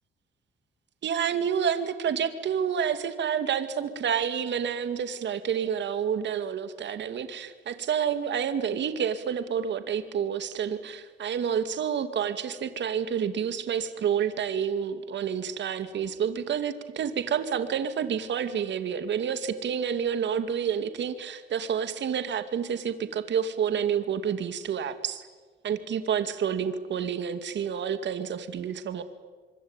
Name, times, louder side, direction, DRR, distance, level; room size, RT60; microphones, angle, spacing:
voice 1, 1.0-25.2 25.6-29.0, right 8 dB, 65° right, 10 dB, 2.4 m, -29 dB
25.0 x 25.0 x 9.1 m, 1.4 s
cardioid pair, 90°, 20 cm